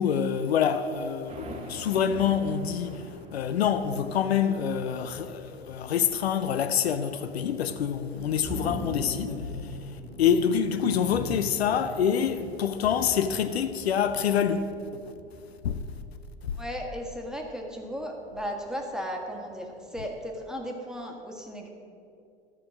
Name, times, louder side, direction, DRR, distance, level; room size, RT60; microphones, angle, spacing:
voice 1, 0.0-9.8 10.2-14.6 14.9-15.1 15.6-15.8 16.4-16.6, left 8 dB, 75° left, 0.6 m, -26 dB
sound 1, 1.3-17.5 17.8-18.6 18.9-19.1 19.5-20.0, equal, 20° right, 1.5 m, -42 dB
voice 2, 16.5-21.7, equal, ahead, 1.4 m, -35 dB
13.5 x 5.2 x 6.2 m
figure-of-eight pair, 85°, 32 cm